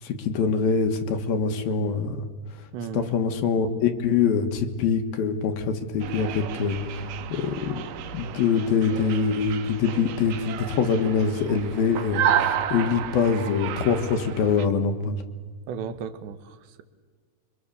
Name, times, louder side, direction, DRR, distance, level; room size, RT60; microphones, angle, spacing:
voice 1, 0.0-2.2 2.9-7.9 8.1-15.2, left 5 dB, 65° left, 7 dB, 3.1 m, -24 dB
voice 2, 2.7-3.2 15.7-16.8, right 6 dB, 85° right, 10 dB, 3.6 m, -35 dB
sound 1, 6.0-14.7, right 9 dB, 70° right, 2.3 m, -31 dB
27.5 x 24.5 x 7.0 m, 1.5 s
omnidirectional pair, 4.9 m